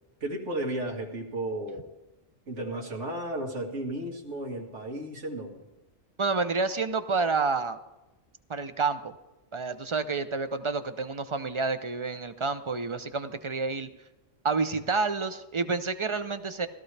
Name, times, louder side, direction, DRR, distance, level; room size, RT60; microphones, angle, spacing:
voice 1, 0.2-1.9 2.5-5.6, right 1 dB, 90° right, 1 dB, 2.1 m, -34 dB
voice 2, 6.2-7.8 8.5-9.1 9.5-13.9 14.4-16.7, right 4 dB, 45° right, 11 dB, 0.4 m, -29 dB
17.0 x 13.0 x 3.3 m, 1.0 s
omnidirectional pair, 1.2 m